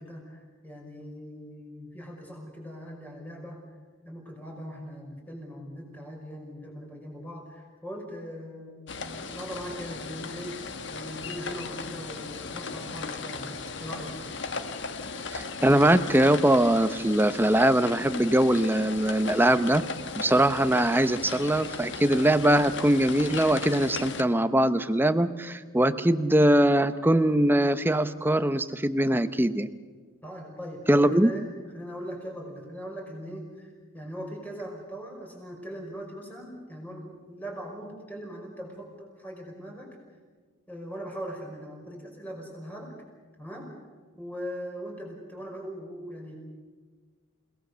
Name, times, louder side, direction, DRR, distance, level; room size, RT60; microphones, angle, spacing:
voice 1, 0.0-3.6 4.0-14.2 30.2-31.5 31.7-39.9 40.7-42.9 43.4-43.7 44.2-46.3, equal, 10° left, 0 dB, 5.4 m, -40 dB
sound 1, 8.9-24.2, left 4 dB, 55° left, 1.3 m, -37 dB
voice 2, 15.3-19.8 20.2-29.7 30.9-31.3, right 1 dB, 10° right, 11 dB, 0.7 m, -22 dB
29.5 x 18.5 x 6.9 m, 1.5 s
head